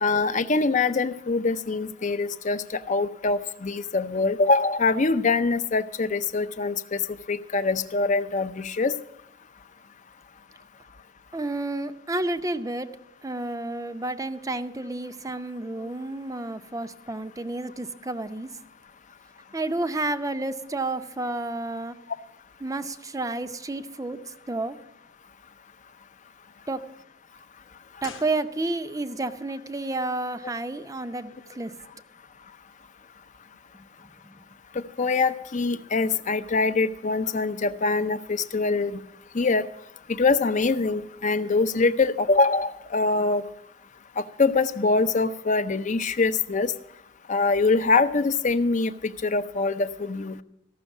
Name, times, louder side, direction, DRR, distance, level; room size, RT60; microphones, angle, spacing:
voice 1, 0.0-7.0 7.3-8.9 35.0-39.0 39.3-39.6 40.2-43.4 44.2-46.7 47.3-50.4, left 3 dB, 40° left, 12 dB, 0.6 m, -24 dB
voice 2, 11.3-12.9 13.2-18.5 19.5-22.0 22.6-24.2 24.5-24.8 26.7-26.8 28.0-31.7 34.2-34.3, right 2 dB, 15° right, 11 dB, 0.6 m, -30 dB
sound 1, 28.0-29.1 29.3-29.4, left 5 dB, 80° left, 0.9 m, -45 dB
14.5 x 6.3 x 8.2 m, 0.76 s
head